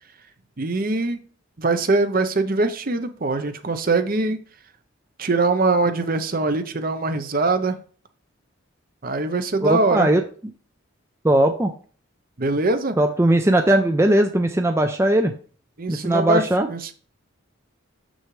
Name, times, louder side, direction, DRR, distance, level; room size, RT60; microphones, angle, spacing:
voice 1, 0.6-1.2 1.6-4.4 5.2-7.8 9.0-10.1 12.4-13.0 15.8-16.9, right 3 dB, 45° right, 9 dB, 0.7 m, -22 dB
voice 2, 9.6-10.2 11.2-11.7 13.0-15.3 15.9-16.7, right 1 dB, 15° right, 5 dB, 0.4 m, -19 dB
7.0 x 6.3 x 3.2 m, 0.41 s
head